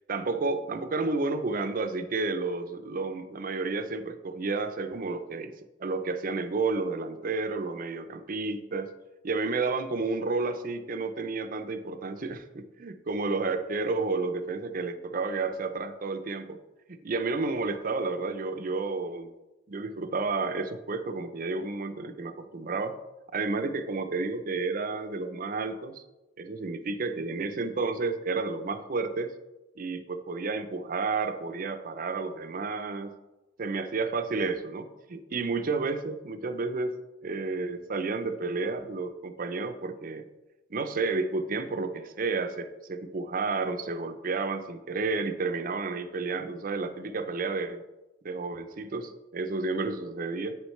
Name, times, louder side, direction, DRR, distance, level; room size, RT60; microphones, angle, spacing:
voice 1, 0.1-5.5 5.8-8.9 9.2-16.6 16.9-19.3 19.7-23.0 23.3-26.0 26.4-29.3 29.8-33.2 33.6-37.0 37.2-40.3 40.7-47.8 48.3-50.6, right 3 dB, 50° right, 9 dB, 0.6 m, -31 dB
8.5 x 6.4 x 3.2 m, 1.1 s
head